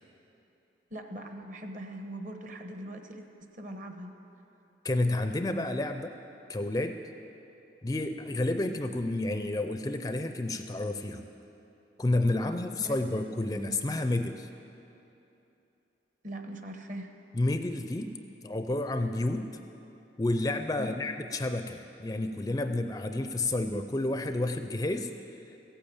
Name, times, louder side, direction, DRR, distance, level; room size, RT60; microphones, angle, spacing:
voice 1, 0.9-3.3 3.5-4.1 12.3-13.2 16.2-17.2 20.7-21.0, equal, 45° right, 5 dB, 1.0 m, -41 dB
voice 2, 4.8-6.1 6.5-7.0 7.8-11.2 12.0-14.5 17.3-18.2 18.4-19.5 20.2-25.1, left 2 dB, 20° left, 7 dB, 0.4 m, -30 dB
14.5 x 8.7 x 8.6 m, 2.9 s
head